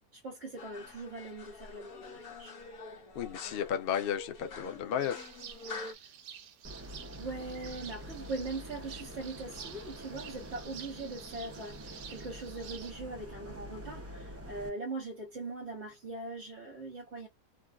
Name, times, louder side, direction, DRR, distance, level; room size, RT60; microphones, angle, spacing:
voice 1, 0.1-2.5 7.2-17.3, right 3 dB, 45° right, 1.3 m, -41 dB
sound 1, 0.6-5.9, left 3 dB, 65° left, 1.6 m, -46 dB
voice 2, 3.2-5.3, left 8 dB, 85° left, 0.5 m, -33 dB
sound 2, 5.0-12.9, right 8 dB, 85° right, 1.2 m, -50 dB
sound 3, 6.6-14.7, equal, 15° right, 0.6 m, -46 dB
3.4 x 2.3 x 2.3 m
omnidirectional pair, 1.7 m